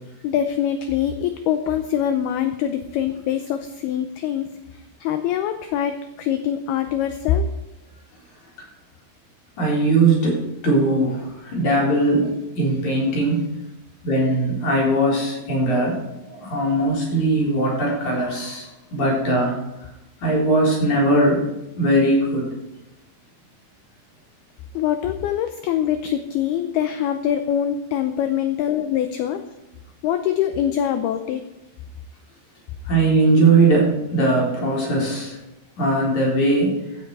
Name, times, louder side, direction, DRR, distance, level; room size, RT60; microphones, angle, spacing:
voice 1, 0.2-4.5 5.0-7.5 24.7-29.4 30.0-31.5, left 9 dB, 80° left, 8 dB, 2.3 m, -24 dB
voice 2, 9.6-13.5 14.0-19.5 20.2-21.5 21.7-22.6 32.9-35.4 35.8-36.8, right 2 dB, 40° left, -2 dB, 4.9 m, -20 dB
16.0 x 12.0 x 4.8 m, 0.95 s
omnidirectional pair, 5.3 m